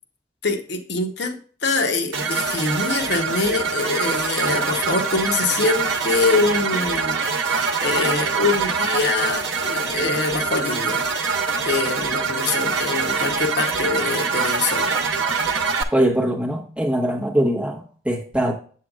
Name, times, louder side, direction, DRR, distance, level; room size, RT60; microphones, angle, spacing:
voice 1, 0.4-11.1 11.6-14.9, left 3 dB, 65° left, 5 dB, 0.9 m, -24 dB
sound 1, 2.1-15.8, right 5 dB, 90° right, 0.8 m, -24 dB
voice 2, 15.9-18.5, right 1 dB, 5° right, 0 dB, 1.1 m, -22 dB
7.8 x 7.5 x 2.3 m, 0.42 s
head